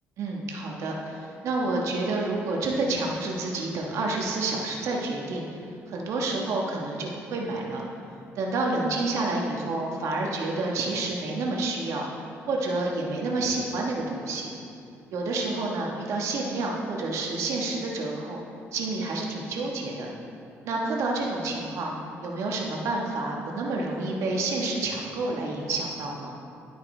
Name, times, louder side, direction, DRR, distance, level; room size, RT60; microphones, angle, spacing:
voice 1, 0.2-5.5 5.9-7.8 8.4-12.0 12.5-14.5 15.1-18.4 18.7-20.1 20.6-21.9 22.2-26.4, right 2 dB, 70° right, -1 dB, 1.4 m, -29 dB
12.0 x 8.6 x 3.4 m, 2.6 s
cardioid pair, 105°, 5 cm